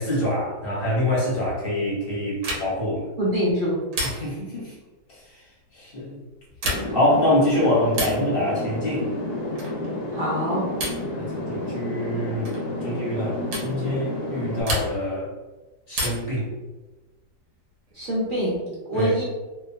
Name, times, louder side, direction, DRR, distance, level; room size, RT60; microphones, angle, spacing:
voice 1, 0.0-3.1 4.0-4.7 5.1-5.4 5.7-6.2 6.9-9.1 11.1-12.5 12.8-15.3 15.9-16.5 18.9-19.1, left 1 dB, 50° left, -6 dB, 0.7 m, -25 dB
sound 1, 2.4-2.9 3.9-4.5 6.5-7.1 7.9-8.3 9.6-9.9 10.8-11.1 12.4-12.7 13.5-13.7 14.6-15.2 15.9-16.4 17.9-18.6, equal, 70° right, 1.0 m, -31 dB
voice 2, 3.2-3.8 10.1-10.7 17.9-18.6 18.9-19.2, equal, 45° right, -7 dB, 0.7 m, -24 dB
sound 2, 6.6-14.6, left 1 dB, 75° left, 1.1 m, -30 dB
3.0 x 2.1 x 2.5 m, 1.1 s
omnidirectional pair, 1.8 m